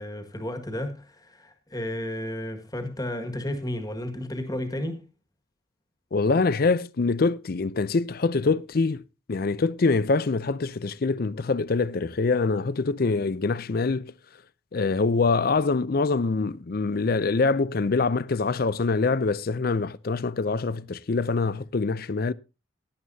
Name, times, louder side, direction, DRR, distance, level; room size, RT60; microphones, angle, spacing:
voice 1, 0.0-5.0, left 1 dB, 20° left, 1.8 m, -32 dB
voice 2, 6.1-9.0 9.3-14.1 14.7-22.3, left 4 dB, 50° left, 0.5 m, -24 dB
17.5 x 11.0 x 2.7 m
head